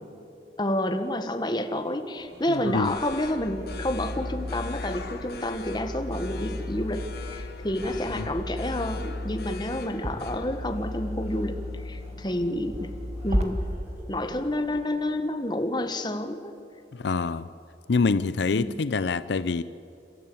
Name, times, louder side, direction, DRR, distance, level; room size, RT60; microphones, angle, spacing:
voice 1, 0.6-12.9 13.2-13.6 14.1-16.5 18.5-18.8, left 1 dB, 25° left, 7 dB, 1.4 m, -29 dB
sound 1, 2.2-11.7, left 4 dB, 60° left, 1.3 m, -44 dB
sound 2, 2.3-14.6, equal, 10° right, 6.4 m, -51 dB
voice 2, 2.5-2.9 8.1-8.3 16.9-17.5 17.9-19.6, left 4 dB, 75° left, 14 dB, 0.5 m, -26 dB
sound 3, 2.8-13.4, left 1 dB, 40° right, 2.1 m, -35 dB
29.5 x 13.5 x 8.6 m, 2.9 s
head